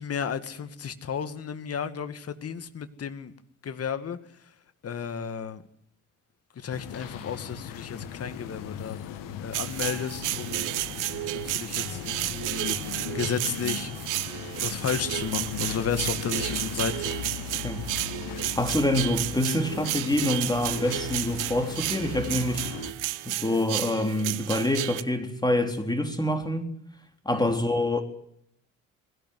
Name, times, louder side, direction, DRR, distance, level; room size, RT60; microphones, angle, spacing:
voice 1, 0.0-3.3 3.6-4.2 4.8-5.6 6.6-9.0 9.4-10.7 11.4-13.9 14.6-17.1 27.3-27.6, left 7 dB, 45° left, 2.1 m, -33 dB
sound 1, 6.7-22.9, left 8 dB, 70° left, 2.1 m, -38 dB
sound 2, 9.5-25.0, right 16 dB, 65° right, 0.9 m, -32 dB
voice 2, 18.6-22.6 23.3-26.7 27.3-28.0, left 1 dB, 10° left, 3.8 m, -26 dB
21.0 x 16.5 x 9.5 m
hypercardioid pair, 55°, 34 cm